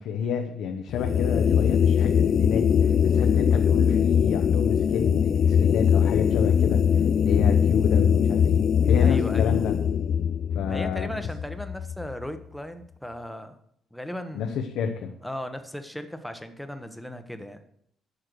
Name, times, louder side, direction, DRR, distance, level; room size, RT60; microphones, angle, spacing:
voice 1, 0.0-9.7 10.5-11.2 14.3-15.1, left 7 dB, 85° left, 4 dB, 1.0 m, -29 dB
sound 1, 0.9-12.2, left 8 dB, 45° left, 0.3 m, -21 dB
voice 2, 9.0-9.5 10.7-13.6 13.9-14.5 15.2-17.6, equal, ahead, 8 dB, 0.9 m, -36 dB
9.9 x 6.5 x 6.8 m, 0.72 s
cardioid pair, 160°, 0 cm